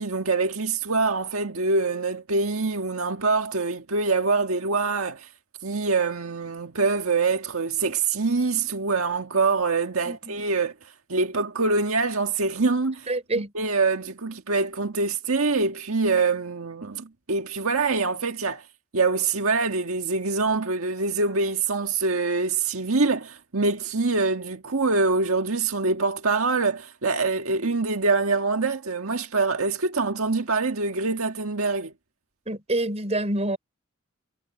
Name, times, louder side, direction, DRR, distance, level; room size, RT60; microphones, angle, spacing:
voice 1, 0.0-5.3 5.6-10.7 11.1-13.1 13.5-18.6 18.9-31.9, right 3 dB, 85° right, 1.6 m, -24 dB
voice 2, 10.0-10.4 13.1-13.5 32.4-33.6, right 1 dB, 30° right, 5.1 m, -27 dB
head